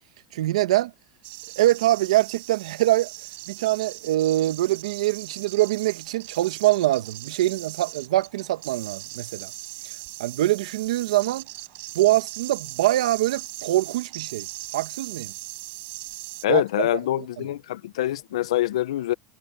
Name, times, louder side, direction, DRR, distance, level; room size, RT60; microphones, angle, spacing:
voice 1, 0.3-0.9 1.6-3.1 3.5-9.5 10.2-11.4 11.9-14.5 14.7-15.3 16.5-16.9, right 15 dB, 85° right, 1.3 m, -23 dB
sound 1, 1.2-16.5, right 24 dB, 60° right, 6.4 m, -40 dB
voice 2, 16.4-19.1, left 14 dB, 90° left, 0.7 m, -25 dB
supercardioid pair, 120°, 3 cm